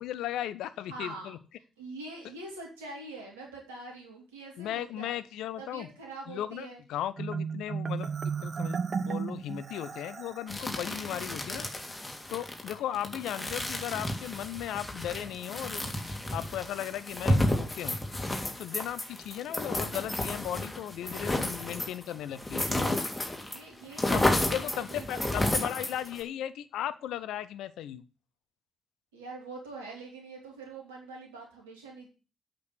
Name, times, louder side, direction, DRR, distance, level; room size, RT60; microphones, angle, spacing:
voice 1, 0.0-1.4 4.6-5.9 6.3-11.7 12.3-15.8 16.3-18.0 18.6-23.0 24.1-28.0, left 11 dB, 70° left, 15 dB, 0.7 m, -36 dB
voice 2, 0.9-1.4 1.8-5.2 5.6-6.8 23.4-25.6 29.1-32.1, right 3 dB, 85° right, 0 dB, 3.5 m, -44 dB
Marimba xylophone, 7.2-10.5, right 5 dB, 50° right, 0.8 m, -34 dB
sound 1, 10.5-23.6 23.8-26.2, left 1 dB, 15° left, 3.0 m, -32 dB
8.4 x 6.4 x 8.3 m, 0.34 s
hypercardioid pair, 40°, 0 cm